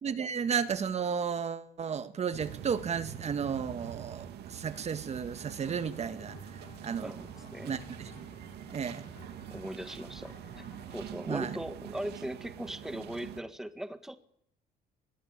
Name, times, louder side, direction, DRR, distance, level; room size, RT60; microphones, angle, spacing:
voice 1, 0.0-6.4 6.8-7.1 7.6-8.3 8.7-9.1 11.3-11.6, right 7 dB, 40° right, 1.8 m, -33 dB
sound 1, 2.3-13.4, right 10 dB, 75° right, 2.5 m, -45 dB
sound 2, 5.4-11.0, left 3 dB, 45° left, 7.7 m, -54 dB
voice 2, 7.0-7.7 9.5-10.7 10.9-14.2, right 1 dB, ahead, 1.6 m, -39 dB
24.5 x 21.0 x 8.8 m
cardioid pair, 110°, 17 cm